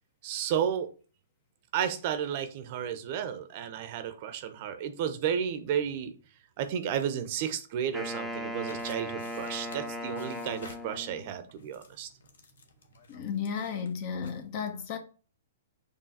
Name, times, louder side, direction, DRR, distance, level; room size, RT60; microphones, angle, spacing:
voice 1, 0.2-0.9 1.7-6.1 6.6-12.1, right 9 dB, 45° right, 0.6 m, -32 dB
Wind instrument woodwind instrument, 7.9-11.4, left 1 dB, 5° left, 0.7 m, -37 dB
sound 1, 8.7-14.4, left 4 dB, 70° left, 0.8 m, -53 dB
voice 2, 13.1-15.0, left 6 dB, 45° left, 0.8 m, -34 dB
4.6 x 2.8 x 4.1 m
hypercardioid pair, 120°, 0 cm